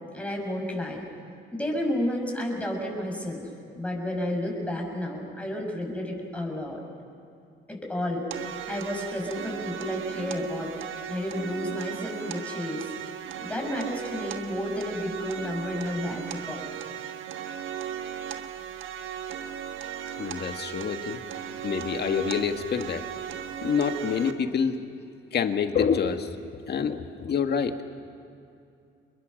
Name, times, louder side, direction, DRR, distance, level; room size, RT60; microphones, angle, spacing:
voice 1, 0.1-1.0 1.5-3.5 3.8-6.8 7.7-10.7 11.1-12.9 13.4-16.9, left 1 dB, 5° left, 0 dB, 6.7 m, -31 dB
sound 1, 8.3-24.3, right 9 dB, 80° right, 1.4 m, -37 dB
voice 2, 20.2-21.2 21.6-23.1 23.6-24.8 25.3-27.8, left 6 dB, 55° left, 7 dB, 1.8 m, -27 dB
29.5 x 21.5 x 6.6 m, 2.5 s
cardioid pair, 90°, 20 cm